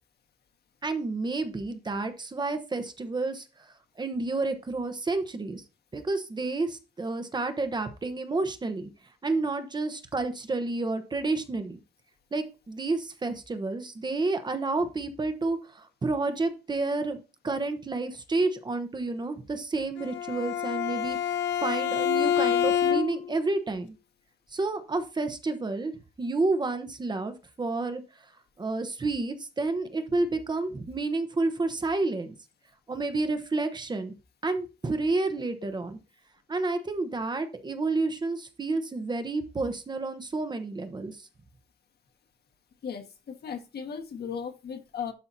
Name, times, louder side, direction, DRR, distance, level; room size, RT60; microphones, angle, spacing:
voice 1, 0.8-3.4 4.0-5.6 5.9-8.9 9.2-11.8 12.3-23.9 24.5-25.9 26.2-28.0 28.6-32.3 32.9-34.1 34.4-36.0 36.5-41.2, right 3 dB, 25° right, 8 dB, 1.0 m, -30 dB
Bowed string instrument, 20.0-23.4, left 9 dB, 90° left, 0.7 m, -27 dB
voice 2, 42.8-45.1, left 7 dB, 65° left, 5 dB, 1.6 m, -36 dB
11.5 x 5.6 x 2.8 m, 0.29 s
wide cardioid pair, 155°, 18 cm